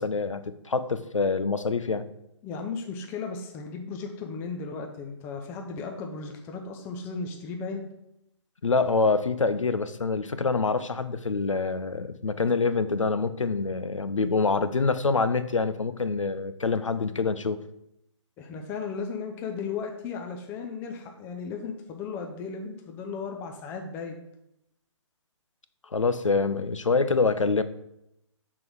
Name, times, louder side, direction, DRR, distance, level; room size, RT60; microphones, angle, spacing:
voice 1, 0.0-2.0 8.6-17.6 25.9-27.6, left 4 dB, 90° left, 13 dB, 0.6 m, -26 dB
voice 2, 2.4-7.8 18.4-24.2, left 5 dB, 15° left, 3 dB, 0.4 m, -35 dB
6.0 x 3.8 x 4.5 m, 0.83 s
figure-of-eight pair, 135°, 16 cm